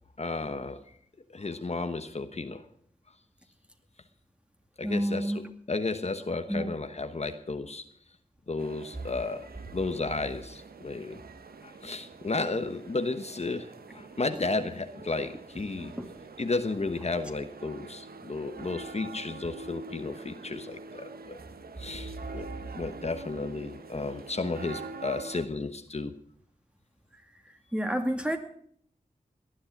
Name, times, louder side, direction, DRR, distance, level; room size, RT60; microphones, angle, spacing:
voice 1, 0.2-0.8 1.3-2.6 4.8-5.4 5.7-7.8 8.5-11.2 11.6-15.9 16.4-21.4 21.8-22.5 22.7-26.2, left 3 dB, 45° left, 8 dB, 1.2 m, -33 dB
voice 2, 4.8-5.5 6.5-6.7 16.0-16.1 27.7-28.4, equal, 5° right, 6 dB, 2.3 m, -29 dB
sound 1, 8.6-25.5, right 4 dB, 90° right, 1.1 m, -45 dB
19.0 x 11.0 x 6.0 m, 0.63 s
wide cardioid pair, 60°, 15 cm